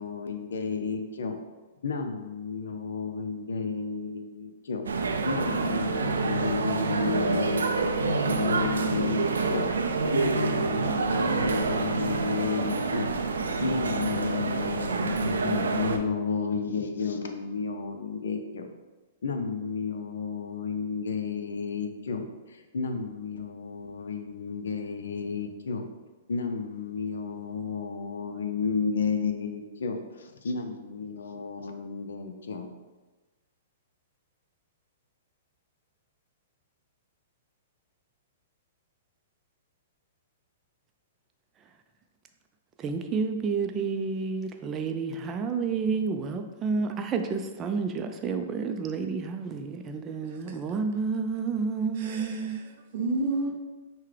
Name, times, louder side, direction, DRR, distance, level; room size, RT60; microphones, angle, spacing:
voice 1, 0.0-1.4 1.8-13.2 13.6-18.7 19.2-25.9 26.3-32.7, left 5 dB, 80° left, 0.5 m, -32 dB
sound 1, 4.9-16.0, right 4 dB, 90° right, 0.4 m, -27 dB
voice 2, 42.8-52.6, right 5 dB, 25° right, 0.4 m, -30 dB
voice 3, 52.0-53.6, right 2 dB, 55° right, 0.7 m, -32 dB
5.7 x 2.2 x 3.3 m
hypercardioid pair, 130°, 0 cm